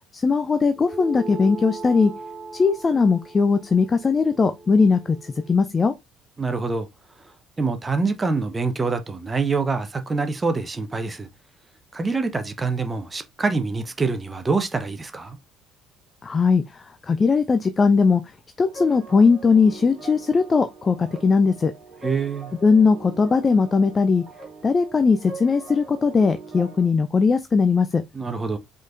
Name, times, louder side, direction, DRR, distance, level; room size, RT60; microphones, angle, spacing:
voice 1, 0.2-2.1 2.5-5.2 5.5-5.9 16.2-16.6 17.1-18.2 18.6-21.7 22.6-24.2 24.6-28.0, left 4 dB, 30° left, 0.5 m, -19 dB
sound 1, 0.8-5.6, right 2 dB, 10° left, 2.4 m, -38 dB
voice 2, 6.4-6.9 7.6-11.3 11.9-15.4 22.0-22.5 28.1-28.6, right 4 dB, 20° right, 0.8 m, -25 dB
sound 2, 18.6-26.9, right 4 dB, 35° right, 3.1 m, -41 dB
5.0 x 3.8 x 2.5 m
figure-of-eight pair, 55°, 0 cm